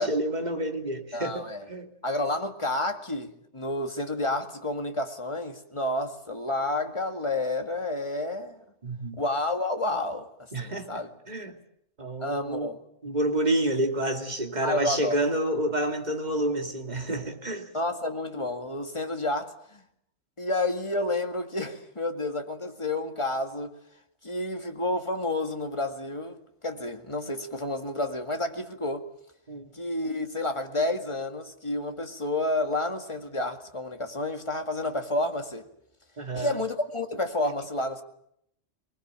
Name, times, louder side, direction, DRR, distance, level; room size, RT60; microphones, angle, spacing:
voice 1, 0.0-1.9 8.8-9.2 10.5-11.0 11.3-11.6 12.0-12.8 13.0-17.7 29.5-29.7 36.2-36.6, right 1 dB, 35° right, 2.7 m, -29 dB
voice 2, 1.1-1.7 2.0-8.6 9.2-10.3 10.6-11.1 12.2-12.8 14.6-15.2 17.7-19.8 20.4-23.7 24.2-26.4 26.6-29.1 29.7-35.6 36.3-38.0, left 2 dB, 25° left, 2.0 m, -30 dB
24.0 x 21.0 x 8.9 m
omnidirectional pair, 1.3 m